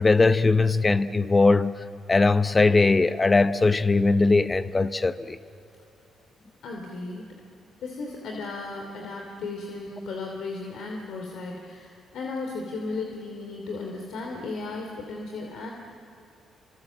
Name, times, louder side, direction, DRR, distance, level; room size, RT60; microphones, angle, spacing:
voice 1, 0.0-1.7 2.1-5.4, left 3 dB, 25° left, 12 dB, 0.8 m, -20 dB
voice 2, 6.6-7.3 7.8-15.7, left 3 dB, 75° left, 1 dB, 2.8 m, -35 dB
28.5 x 26.0 x 7.5 m, 2.8 s
cardioid pair, 90°, 0 cm